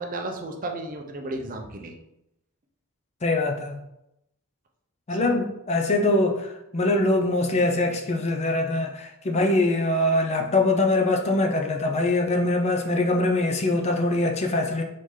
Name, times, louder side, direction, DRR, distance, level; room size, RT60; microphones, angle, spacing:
voice 1, 0.0-2.0 5.1-5.4, right 2 dB, 40° right, 3 dB, 0.5 m, -34 dB
voice 2, 3.2-3.8 5.1-14.8, left 2 dB, 30° left, 3 dB, 0.4 m, -23 dB
4.1 x 3.7 x 3.2 m, 0.86 s
head